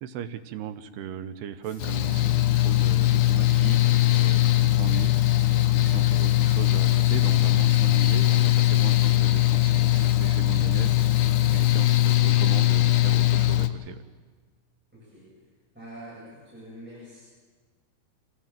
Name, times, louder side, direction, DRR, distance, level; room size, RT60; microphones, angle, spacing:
voice 1, 0.0-5.1 5.5-14.0, right 9 dB, 85° right, 10 dB, 3.0 m, -37 dB
sound 1, 1.6-12.2, left 3 dB, 35° left, 2.8 m, -49 dB
Mechanical fan, 1.8-13.7, left 15 dB, 80° left, 1.8 m, -21 dB
voice 2, 14.9-15.4 15.7-17.2, right 1 dB, ahead, -9 dB, 7.6 m, -45 dB
25.5 x 16.5 x 7.4 m, 1.5 s
omnidirectional pair, 4.6 m